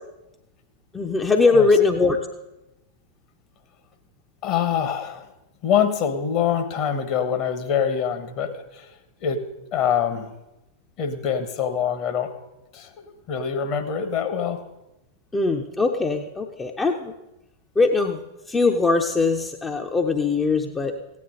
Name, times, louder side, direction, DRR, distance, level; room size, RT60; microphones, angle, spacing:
voice 1, 0.9-2.2 15.3-17.1 17.8-18.2 18.5-21.0, left 3 dB, 15° left, 3 dB, 0.7 m, -21 dB
voice 2, 4.4-5.3 5.6-8.9 9.2-9.4 9.7-10.3 11.0-12.3 12.7-14.6, left 8 dB, 40° left, 8 dB, 1.2 m, -24 dB
15.5 x 9.5 x 3.8 m, 0.94 s
figure-of-eight pair, 90°, 0 cm